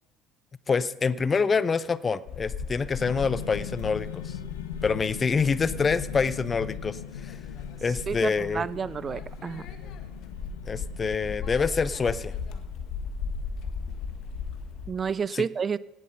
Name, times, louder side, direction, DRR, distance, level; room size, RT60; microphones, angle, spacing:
voice 1, 0.7-4.4 4.8-7.4 7.8-8.7 10.7-12.3 15.3-15.5, left 5 dB, 30° left, 18 dB, 0.5 m, -26 dB
sound 1, 2.3-14.9, left 5 dB, 55° left, 1.3 m, -37 dB
sound 2, 3.0-11.6, left 10 dB, 75° left, 0.7 m, -40 dB
voice 2, 8.1-9.6 14.9-15.8, right 6 dB, 30° right, 20 dB, 0.3 m, -30 dB
17.5 x 7.6 x 5.7 m, 1.1 s
figure-of-eight pair, 60°, 0 cm